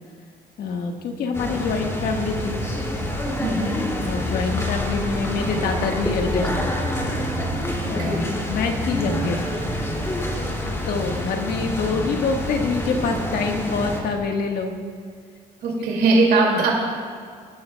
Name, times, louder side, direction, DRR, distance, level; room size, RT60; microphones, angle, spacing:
voice 1, 0.6-2.6 4.0-6.7 7.9-9.4 10.8-14.7, left 4 dB, 65° left, 3 dB, 1.5 m, -26 dB
sound 1, 1.3-14.0, left 1 dB, 15° left, 2.4 m, -27 dB
voice 2, 3.4-3.8 8.0-8.3 15.6-16.7, right 3 dB, 70° right, -1 dB, 2.4 m, -20 dB
21.0 x 11.5 x 2.3 m, 2.1 s
cardioid pair, 110°, 17 cm